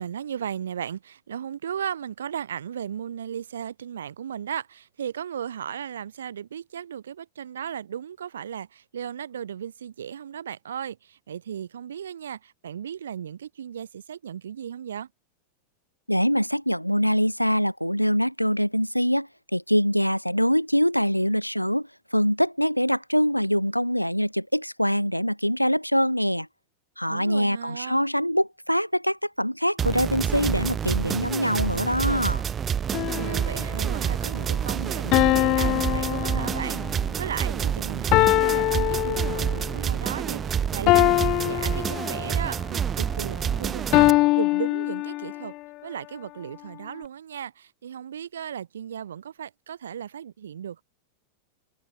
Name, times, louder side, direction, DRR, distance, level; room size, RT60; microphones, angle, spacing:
voice 1, 0.0-15.1 27.1-28.0 32.9-45.5 45.8-50.8, right 9 dB, 65° right, 2.2 m, -36 dB
voice 2, 16.1-26.5 27.0-32.4, equal, 90° left, 2.2 m, -24 dB
sound 1, 29.8-44.1, right 8 dB, 25° right, 1.3 m, -28 dB
sound 2, 32.9-33.8 35.1-37.0 38.1-39.7 40.9-42.5 43.9-45.6, left 20 dB, 40° left, 0.3 m, -23 dB
figure-of-eight pair, 90°, 0 cm